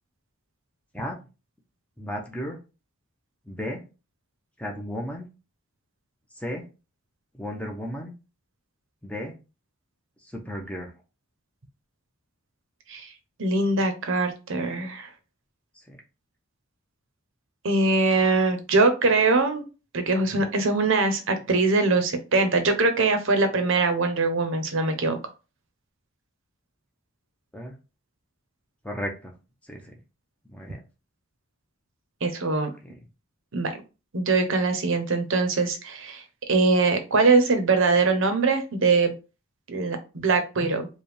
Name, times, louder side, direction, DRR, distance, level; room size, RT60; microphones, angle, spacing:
voice 1, 2.0-2.6 3.5-3.8 4.6-5.3 6.3-6.7 7.3-8.1 9.0-9.4 10.2-10.9 15.7-16.0 27.5-27.7 28.8-29.3 29.6-30.0 30.5-30.8 32.8-32.9, equal, 5° left, 1 dB, 0.7 m, -34 dB
voice 2, 13.4-15.1 17.6-19.6 19.9-25.2 32.2-32.7 33.5-33.7 34.1-36.2 36.5-39.1 39.7-40.9, right 3 dB, 60° right, 7 dB, 0.8 m, -22 dB
4.8 x 2.3 x 3.3 m, 0.30 s
head